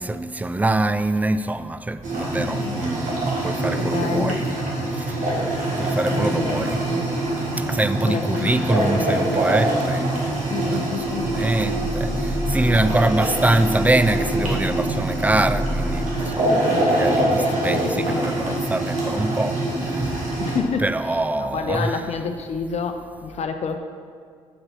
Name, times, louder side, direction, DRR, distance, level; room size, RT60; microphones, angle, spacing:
voice 1, 0.0-4.5 4.9-5.2 5.8-6.8 7.6-20.3 20.8-22.0, right 2 dB, 10° right, 0.3 m, -24 dB
sound 1, 2.0-20.6, right 1 dB, 75° right, 1.6 m, -24 dB
voice 2, 2.2-2.8 3.6-4.4 5.6-7.1 8.0-9.1 10.5-11.3 16.7-17.1 17.4-18.6 20.3-23.8, left 5 dB, 55° left, 0.5 m, -30 dB
sound 2, 11.0-16.2, equal, 5° left, 1.4 m, -30 dB
6.6 x 4.0 x 5.8 m
supercardioid pair, 55°, 13 cm